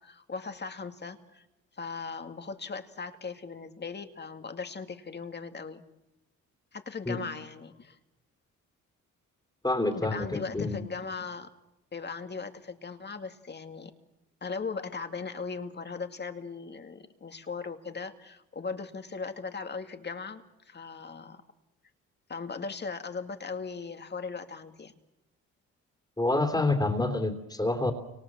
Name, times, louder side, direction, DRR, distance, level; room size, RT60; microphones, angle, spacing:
voice 1, 0.0-1.5 1.7-5.8 6.7-8.0 9.9-11.5 11.9-13.9 14.4-21.4 22.3-24.9, left 4 dB, 35° left, 7 dB, 2.3 m, -38 dB
voice 2, 9.6-10.8 26.2-27.9, left 2 dB, 15° left, 4 dB, 3.3 m, -27 dB
30.0 x 25.5 x 7.5 m, 0.94 s
cardioid pair, 90°, 30 cm